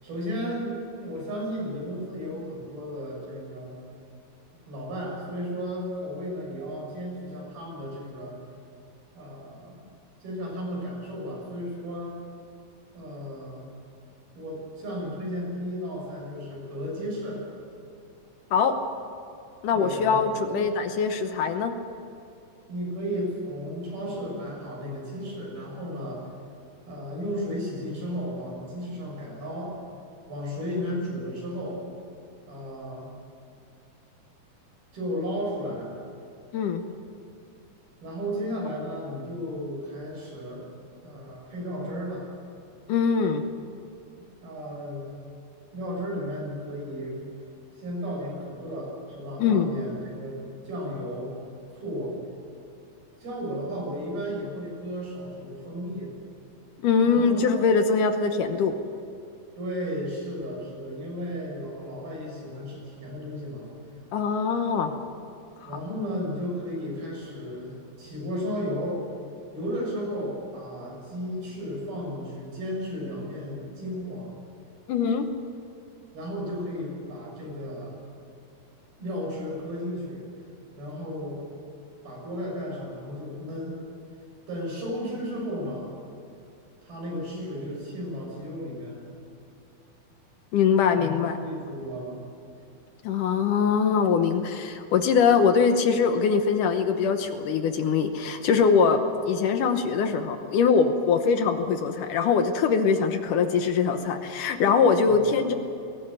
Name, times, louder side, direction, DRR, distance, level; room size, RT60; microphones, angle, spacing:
voice 1, 0.0-3.8 4.7-8.4 9.2-9.8 10.2-12.2 12.9-13.7 14.4-17.4 19.7-20.5 22.7-26.3 26.9-29.8 30.3-31.8 32.5-33.1 34.9-35.9 38.0-40.7 41.0-42.3 44.1-45.2 45.7-47.2 47.8-51.4 51.7-52.2 53.2-56.2 57.1-57.6 59.6-63.7 65.7-69.0 69.5-74.3 76.1-78.0 79.0-80.3 80.8-81.4 82.0-83.8 84.5-86.0 86.8-89.1 90.9-91.2 91.4-92.2 105.1-105.2, equal, 80° right, -2 dB, 8.7 m, -34 dB
voice 2, 19.6-21.7 36.5-36.8 42.9-43.4 49.4-49.7 56.8-58.8 64.1-65.0 65.6-65.7 74.9-75.3 90.5-91.4 93.0-99.0 99.3-105.5, left 6 dB, 70° left, 7 dB, 2.4 m, -22 dB
20.5 x 17.5 x 9.0 m, 2.6 s
omnidirectional pair, 4.2 m